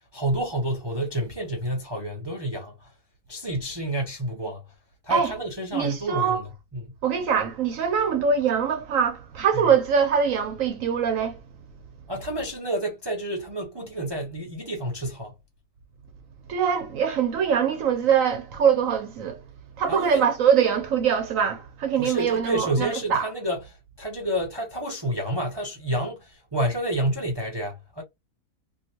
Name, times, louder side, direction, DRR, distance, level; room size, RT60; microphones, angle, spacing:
voice 1, 0.1-2.9 3.3-4.6 5.0-6.5 6.7-7.0 12.1-15.4 19.9-20.2 22.0-23.6 24.0-28.0, right 1 dB, 35° right, 0.4 m, -29 dB
voice 2, 5.7-6.4 7.0-11.4 16.5-19.4 19.8-23.3, right 7 dB, 65° right, 0.9 m, -23 dB
3.1 x 2.5 x 2.8 m
omnidirectional pair, 1.7 m